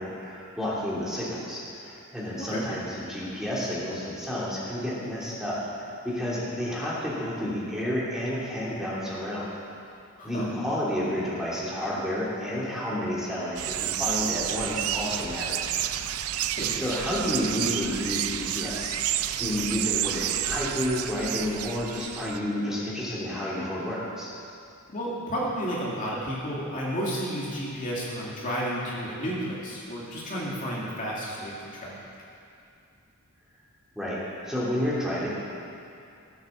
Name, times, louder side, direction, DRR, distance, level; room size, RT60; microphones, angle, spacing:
voice 1, 0.0-9.5 10.2-15.8 16.8-24.3 33.9-35.3, left 1 dB, ahead, -7 dB, 2.9 m, -30 dB
voice 2, 2.4-2.7 10.2-10.5 16.6-17.0 24.9-32.0, equal, 40° left, -5 dB, 2.3 m, -32 dB
sound 1, 13.6-22.4, right 11 dB, 85° right, 0.5 m, -30 dB
16.0 x 8.3 x 7.1 m, 2.5 s
head